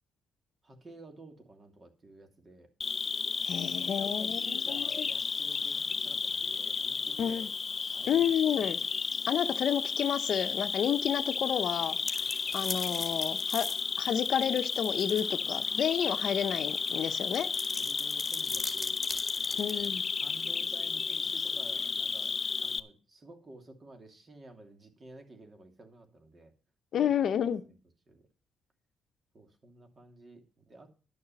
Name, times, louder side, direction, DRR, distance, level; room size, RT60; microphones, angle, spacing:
voice 1, 0.6-2.7 3.6-7.5 7.9-8.3 12.2-13.0 15.4-15.8 16.3-16.4 17.0-17.5 17.8-18.9 19.4-19.9 20.2-26.5 27.0-27.8 28.1-28.3 29.3-30.9, right 2 dB, 35° right, 4 dB, 2.7 m, -53 dB
Cricket, 2.8-22.8, left 5 dB, 35° left, 0.6 m, -33 dB
voice 2, 3.4-5.1 7.2-7.5 8.1-8.8 9.3-12.2 12.5-13.7 14.0-17.5 19.6-20.0 26.9-27.6, left 9 dB, 65° left, 11 dB, 0.8 m, -30 dB
sound 1, 11.7-15.3 15.6-15.7 16.5-19.9, left 2 dB, 15° left, 2.1 m, -40 dB
11.0 x 6.5 x 7.1 m, 0.36 s
cardioid pair, 90°, 0 cm